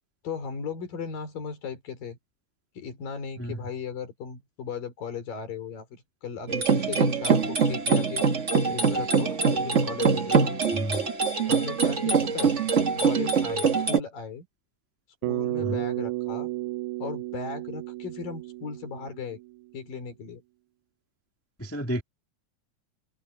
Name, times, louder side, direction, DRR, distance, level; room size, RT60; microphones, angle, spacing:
voice 1, 0.2-2.2 2.8-8.3 8.7-10.5 11.5-12.5 13.0-14.5 15.2-16.5 17.0-19.4 19.7-20.4, left 6 dB, 75° left, 5.9 m, -36 dB
sound 1, 6.5-14.0, right 5 dB, 60° right, 0.7 m, -23 dB
Bass guitar, 15.2-19.6, right 19 dB, 75° right, 1.8 m, -33 dB
voice 2, 21.6-22.0, equal, 10° left, 0.6 m, -31 dB
omnidirectional pair, 4.0 m